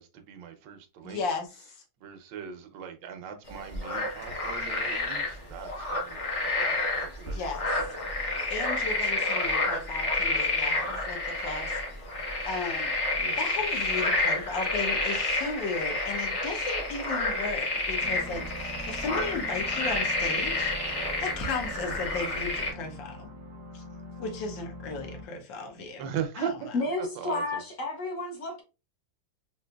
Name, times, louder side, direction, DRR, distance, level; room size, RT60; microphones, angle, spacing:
voice 1, 0.0-1.2 2.0-7.4 7.8-7.9 13.1-13.4 26.0-26.7 27.0-27.6, right 8 dB, 80° right, 1.3 m, -39 dB
voice 2, 1.0-1.5 7.3-7.7 8.5-11.7 12.5-12.9 13.4-20.7 21.2-23.3 23.7-23.8 24.2-26.1 26.4-26.5, left 4 dB, 80° left, 1.5 m, -35 dB
sound 1, 3.5-22.7, left 2 dB, 40° left, 0.4 m, -29 dB
sound 2, 18.0-25.2, equal, 65° right, 0.9 m, -44 dB
voice 3, 26.7-28.6, left 2 dB, 60° left, 1.0 m, -31 dB
3.8 x 2.7 x 2.2 m
omnidirectional pair, 2.0 m